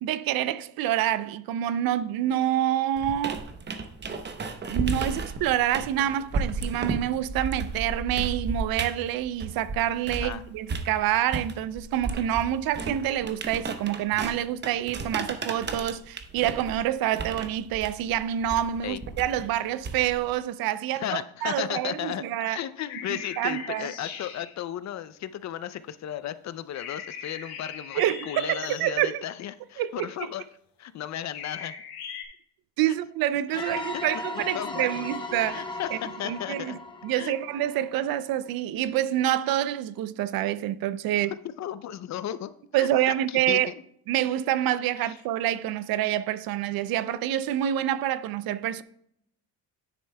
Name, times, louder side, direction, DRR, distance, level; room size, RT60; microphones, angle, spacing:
voice 1, 0.0-3.5 4.7-22.6 23.1-23.9 27.9-29.2 29.8-30.3 32.8-36.0 36.2-36.8 37.0-41.3 42.7-43.7 44.1-48.8, right 12 dB, 65° right, 0.5 m, -27 dB
sound 1, 3.0-10.4 10.7-20.3, right 4 dB, 25° right, 0.7 m, -34 dB
voice 2, 20.9-30.4 30.8-31.8 32.9-33.0 33.5-33.6 33.9-34.0 34.3-35.1 35.5-35.9 36.2-36.8 37.1-37.3 41.6-43.8 45.0-45.1, left 11 dB, 45° left, 0.5 m, -35 dB
sound 2, 22.9-24.5 26.7-29.1 31.3-32.2, left 7 dB, 75° left, 1.8 m, -40 dB
sound 3, 33.5-38.1, left 2 dB, 10° left, 0.8 m, -37 dB
9.9 x 7.8 x 2.2 m
cardioid pair, 110°, 38 cm